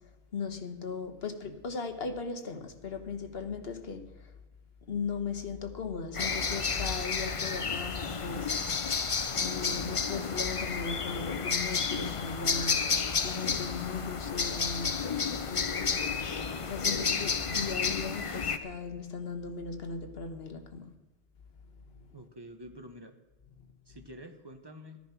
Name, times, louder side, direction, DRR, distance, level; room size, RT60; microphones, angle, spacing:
voice 1, 0.0-4.4 4.8-8.5 9.3-15.0 15.5-20.9 21.9-22.1, left 5 dB, 60° left, 1.4 m, -38 dB
sound 1, 6.1-18.6, left 5 dB, 35° left, 0.7 m, -31 dB
voice 2, 16.7-17.3 22.1-23.2 23.9-25.0, equal, 25° right, 1.0 m, -47 dB
14.0 x 10.5 x 5.9 m
omnidirectional pair, 1.1 m